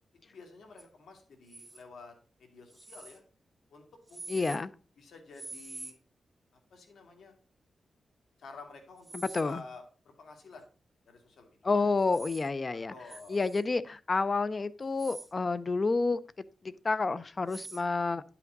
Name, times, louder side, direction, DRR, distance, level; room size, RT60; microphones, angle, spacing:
voice 1, 0.2-2.1 2.4-3.2 3.7-4.5 5.0-6.0 6.7-7.3 8.4-10.6 11.1-11.9 12.9-13.4, left 3 dB, 85° left, 2.4 m, -51 dB
sound 1, 0.8-0.9 1.5-1.8 2.7-3.2 4.1-4.6 5.3-5.9 9.0-9.6 12.0-12.5 13.1-13.6 14.8-15.3 17.5-17.8, right 2 dB, 20° right, 1.1 m, -46 dB
voice 2, 4.3-4.7 9.1-9.6 11.6-12.9 13.3-16.2 16.6-18.2, left 3 dB, 40° left, 0.6 m, -29 dB
10.5 x 5.9 x 3.9 m
cardioid pair, 85°, 0 cm